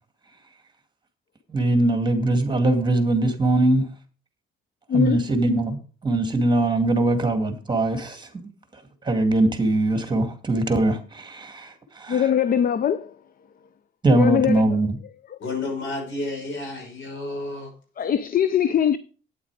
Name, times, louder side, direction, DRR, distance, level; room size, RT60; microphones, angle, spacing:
voice 1, 1.5-3.9 4.9-5.8 6.0-12.3 14.0-14.9, right 2 dB, 20° right, 2.1 m, -22 dB
voice 2, 4.9-5.3 12.1-13.1 14.1-14.6 15.3-15.4 18.0-19.0, left 8 dB, 45° left, 0.6 m, -21 dB
voice 3, 15.4-17.7, left 2 dB, 75° left, 5.7 m, -31 dB
9.2 x 8.5 x 4.8 m
cardioid pair, 90°, 20 cm